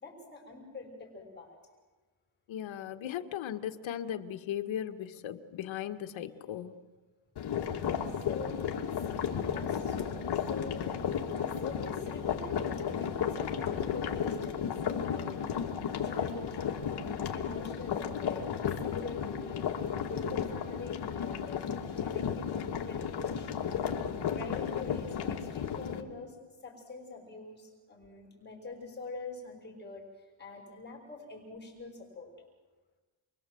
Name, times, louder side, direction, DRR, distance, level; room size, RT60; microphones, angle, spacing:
voice 1, 0.0-1.6 8.3-10.9 11.4-15.3 16.0-18.5 18.8-19.7 20.0-21.7 22.0-22.5 22.9-23.6 24.3-26.4 26.6-30.0 30.4-32.3, left 3 dB, 20° left, 0 dB, 6.1 m, -45 dB
voice 2, 2.5-6.7, left 10 dB, 70° left, 7 dB, 1.7 m, -37 dB
sound 1, 7.4-26.0, left 8 dB, 50° left, 2.7 m, -34 dB
29.0 x 23.0 x 7.8 m, 1.3 s
cardioid pair, 145°, 49 cm